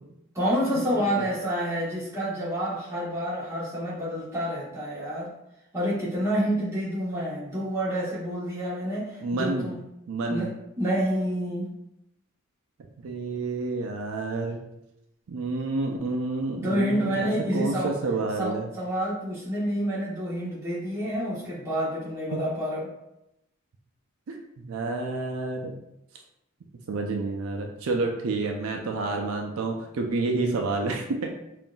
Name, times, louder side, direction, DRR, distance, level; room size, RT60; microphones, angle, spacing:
voice 1, 0.3-5.3 5.7-9.8 10.3-10.5 10.8-11.7 16.6-17.9 18.4-22.9, equal, 15° right, -8 dB, 1.1 m, -28 dB
voice 2, 9.2-9.7 10.1-10.5 13.0-14.6 15.3-18.7 24.3-25.7 26.9-31.3, right 3 dB, 75° right, 2 dB, 0.4 m, -29 dB
5.4 x 2.5 x 2.2 m, 0.87 s
head